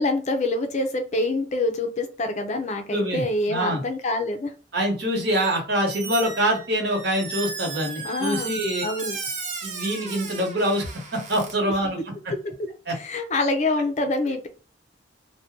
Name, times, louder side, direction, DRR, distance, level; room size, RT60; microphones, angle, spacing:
voice 1, 0.0-4.5 8.0-8.6 8.8-9.2 12.9-14.5, left 2 dB, 40° left, 6 dB, 0.5 m, -26 dB
voice 2, 2.9-3.8 4.7-8.8 9.6-12.0 12.9-13.0, right 1 dB, 60° right, 1 dB, 1.1 m, -25 dB
Squeak, 5.2-5.6 5.9-11.5, right 4 dB, 45° right, 0.7 m, -35 dB
2.6 x 2.2 x 3.5 m, 0.35 s
head